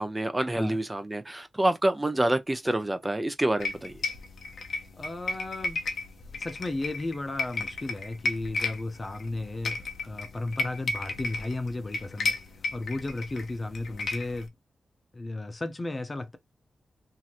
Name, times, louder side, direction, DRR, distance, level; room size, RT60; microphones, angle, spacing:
voice 1, 0.0-4.0, right 1 dB, 20° right, 0.7 m, -27 dB
sound 1, 3.6-14.5, left 3 dB, 75° left, 0.7 m, -34 dB
voice 2, 5.0-5.8 6.3-12.4 12.7-14.5 15.1-16.4, left 2 dB, 35° left, 0.7 m, -34 dB
3.0 x 2.7 x 2.5 m
cardioid pair, 65°, 0 cm